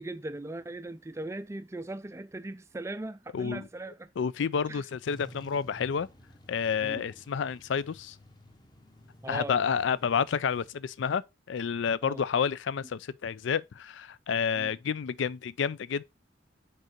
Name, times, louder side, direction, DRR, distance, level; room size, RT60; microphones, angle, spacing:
voice 1, 0.0-4.1 4.7-4.8 6.8-7.1 9.2-9.6 12.0-12.2 14.6-14.7, right 2 dB, 15° right, 0.3 m, -39 dB
voice 2, 3.3-3.6 4.2-6.1 6.5-8.2 9.3-16.0, left 6 dB, 75° left, 0.4 m, -30 dB
sound 1, 5.0-10.7, equal, 20° left, 0.9 m, -53 dB
5.3 x 3.7 x 5.8 m
head